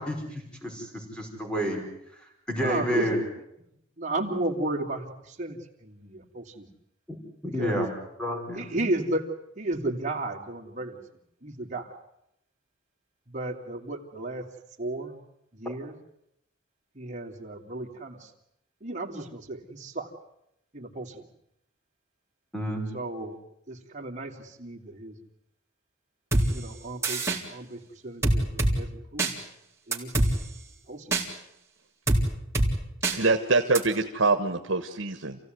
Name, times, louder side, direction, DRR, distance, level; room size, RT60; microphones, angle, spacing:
voice 1, 0.0-1.8 2.5-3.2 7.4-7.9 8.2-8.7 22.5-22.9, equal, 5° left, 2 dB, 5.1 m, -30 dB
voice 2, 2.6-3.3 4.0-6.7 7.6-7.8 8.5-9.3 9.6-11.0 11.4-11.9 13.3-14.4 14.8-15.2 15.5-15.9 16.9-18.3 18.8-20.1 20.7-21.2 22.9-23.4 23.7-25.1 26.5-27.2 27.5-29.3 29.9-30.1 30.9-31.2, right 2 dB, 40° right, 1 dB, 3.1 m, -33 dB
sound 1, 26.3-26.5 27.0-27.4 28.2-28.7 29.2-29.3 29.9-30.3 31.1-31.2 32.1-32.2 32.5-32.7 33.0-33.2 33.7-33.8, right 2 dB, 15° right, 3.6 m, -23 dB
voice 3, 33.1-35.4, right 3 dB, 75° right, 4 dB, 1.5 m, -24 dB
28.0 x 16.5 x 9.5 m, 0.81 s
head